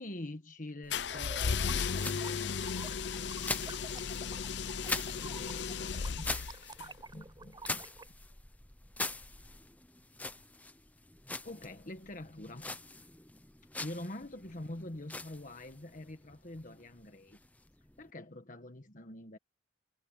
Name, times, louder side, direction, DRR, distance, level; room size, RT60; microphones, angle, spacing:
voice 1, 0.0-3.5 3.9-4.1 4.5-6.3 7.1-7.8 11.4-12.7 13.8-17.4 18.0-19.4, left 1 dB, 45° left, 1.4 m, -46 dB
sound 1, 0.8-18.1, left 2 dB, 10° left, 0.7 m, -44 dB
sound 2, 0.9-6.9, left 6 dB, 65° left, 0.7 m, -35 dB
sound 3, 1.0-8.1, right 3 dB, 20° right, 6.7 m, -50 dB
head